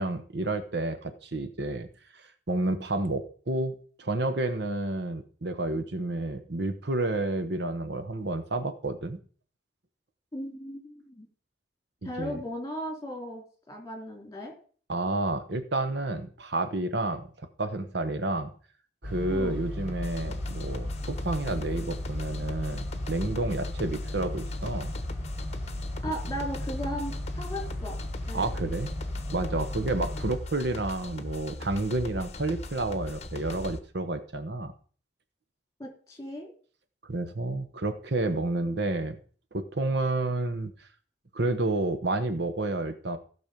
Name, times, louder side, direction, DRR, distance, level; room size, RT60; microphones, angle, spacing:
voice 1, 0.0-1.9 2.1-9.2 12.0-12.4 14.9-18.5 19.0-24.9 26.2-26.3 28.3-28.9 29.3-34.7 37.0-39.2 39.5-40.9 41.3-43.2, right 2 dB, 65° right, 10 dB, 1.1 m, -30 dB
voice 2, 10.3-11.3 12.0-14.5 19.3-19.6 26.0-28.0 28.3-28.5 35.8-36.5, equal, 20° left, 1 dB, 3.7 m, -36 dB
sound 1, 19.0-30.4, left 1 dB, 10° right, 5.0 m, -36 dB
sound 2, 19.9-33.8, left 1 dB, 35° left, 1.0 m, -39 dB
15.5 x 6.2 x 5.2 m, 0.43 s
head